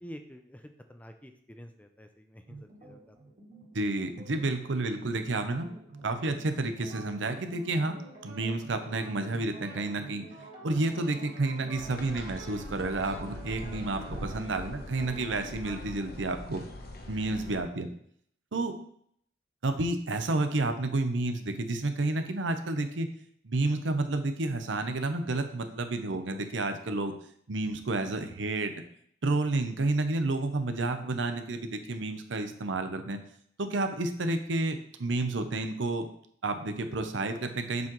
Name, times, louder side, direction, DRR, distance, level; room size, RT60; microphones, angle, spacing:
voice 1, 0.0-0.6 0.9-3.2, equal, 10° left, 6 dB, 0.5 m, -48 dB
sound 1, 2.5-15.7, right 2 dB, 45° right, 2.5 m, -48 dB
voice 2, 3.7-5.7 6.0-8.0 8.2-10.2 10.6-16.7 17.1-17.9 18.5-18.7 19.6-23.1 23.4-27.1 27.5-28.7 29.2-33.2 33.6-36.1 36.4-37.9, right 2 dB, 80° right, 7 dB, 0.8 m, -30 dB
sound 2, 11.7-17.6, left 1 dB, 50° left, 1.0 m, -43 dB
7.3 x 5.9 x 3.1 m, 0.65 s
head